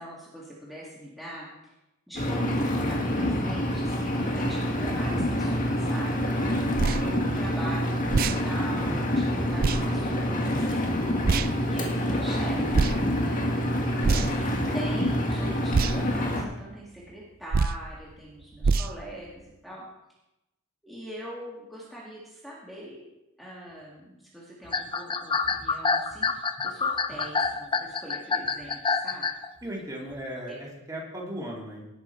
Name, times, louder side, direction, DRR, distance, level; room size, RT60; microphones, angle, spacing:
voice 1, 0.0-1.7 2.1-6.5 6.9-10.9 11.6-12.8 13.1-13.4 14.3-19.9 20.8-23.1 23.4-29.3, right 1 dB, ahead, -6 dB, 1.9 m, -42 dB
Engine, 2.2-16.4, equal, 40° left, 1.8 m, -27 dB
sound 1, 6.7-7.0 8.1-8.4 9.6-9.8 11.2-11.5 12.7-13.0 14.0-14.4 15.7-16.0 17.5-17.8 18.6-18.9, right 4 dB, 45° right, 0.4 m, -24 dB
sound 2, 24.7-29.5, left 5 dB, 25° left, 0.5 m, -26 dB
voice 2, 29.6-31.8, equal, 15° right, -3 dB, 2.5 m, -37 dB
18.0 x 6.2 x 4.5 m, 0.94 s
head